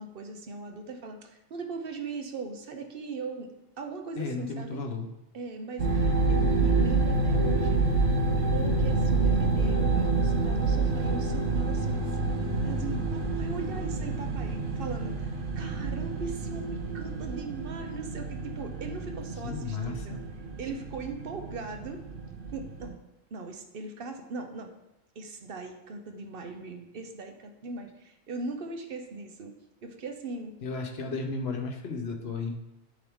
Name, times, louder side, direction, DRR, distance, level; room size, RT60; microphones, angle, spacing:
voice 1, 0.0-3.5 3.8-4.8 5.3-7.8 8.4-12.0 12.6-20.2 20.6-22.0 22.5-23.0 23.3-24.7 25.2-29.5 29.8-30.5, right 4 dB, 55° right, 5 dB, 0.9 m, -39 dB
voice 2, 4.2-5.1 12.9-13.0 19.4-20.2 30.6-32.5, left 4 dB, 55° left, 3 dB, 1.1 m, -34 dB
sound 1, 5.8-22.9, right 3 dB, 75° right, 1.4 m, -28 dB
10.5 x 3.8 x 3.6 m, 0.92 s
omnidirectional pair, 1.3 m